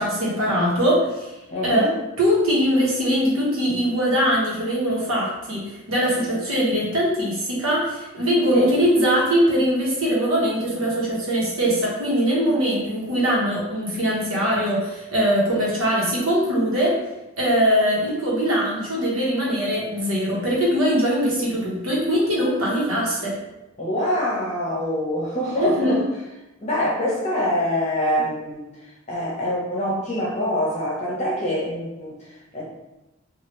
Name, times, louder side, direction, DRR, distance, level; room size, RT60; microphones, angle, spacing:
voice 1, 0.0-1.3 1.6-1.9 2.2-17.0 17.4-23.4 25.6-26.0, equal, 85° right, -5 dB, 1.1 m, -21 dB
voice 2, 1.5-1.9 8.5-8.7 23.8-26.0 26.6-32.6, left 1 dB, 30° left, -5 dB, 0.8 m, -25 dB
2.9 x 2.4 x 3.1 m, 1.0 s
head